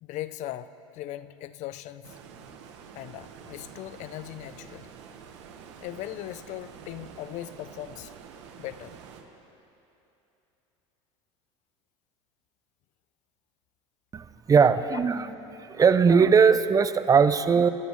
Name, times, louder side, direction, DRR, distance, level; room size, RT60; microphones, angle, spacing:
voice 1, 0.0-2.2 2.9-4.9 5.8-8.1 8.6-9.0 14.9-15.0, left 13 dB, 55° left, 15 dB, 0.6 m, -39 dB
Stream, 2.0-9.2, right 7 dB, 80° right, 1.4 m, -47 dB
voice 2, 14.1-15.3 15.6-17.7, right 6 dB, 25° right, 13 dB, 0.6 m, -20 dB
29.5 x 13.0 x 3.2 m, 2.9 s
hypercardioid pair, 90°, 15 cm